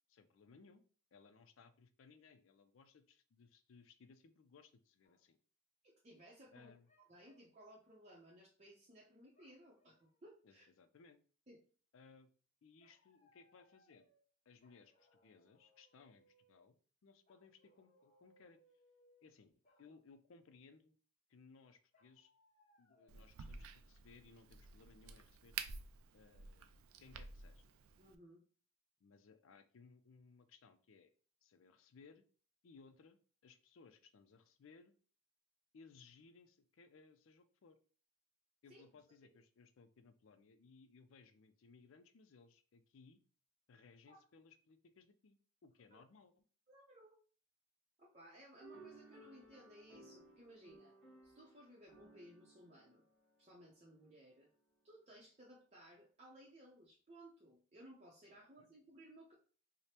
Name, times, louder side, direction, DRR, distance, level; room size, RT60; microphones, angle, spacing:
voice 1, 0.1-0.8 1.1-5.4 6.5-6.9 10.4-11.2 11.9-12.3 12.6-14.1 14.5-18.6 19.2-19.5 19.8-21.0 21.3-22.3 22.8-25.6 26.1-26.7 27.0-27.6 29.0-31.1 31.4-32.2 32.6-35.0 35.7-37.8 38.6-43.2 43.7-46.4 58.6-58.7, left 4 dB, 70° left, 11 dB, 0.4 m, -63 dB
sound 1, 5.0-5.3 6.6-7.5 9.3-10.2 12.8-14.3 14.6-16.7 17.3-19.4 19.6-19.9 21.9-23.3, left 1 dB, 35° left, 1.0 m, -73 dB
voice 2, 5.8-6.7 7.1-10.7 11.5-11.6 28.0-28.4 38.7-38.8 44.1-44.2 45.9-46.0 46.7-47.1 48.0-51.0 51.2-53.0 53.4-54.5 54.8-59.3, right 1 dB, 30° right, -3 dB, 0.6 m, -60 dB
Crack, 23.1-28.1, right 6 dB, 85° right, 0.4 m, -51 dB
sound 2, 48.6-54.2, right 2 dB, 5° left, 1.1 m, -61 dB
4.9 x 2.1 x 2.8 m, 0.40 s
head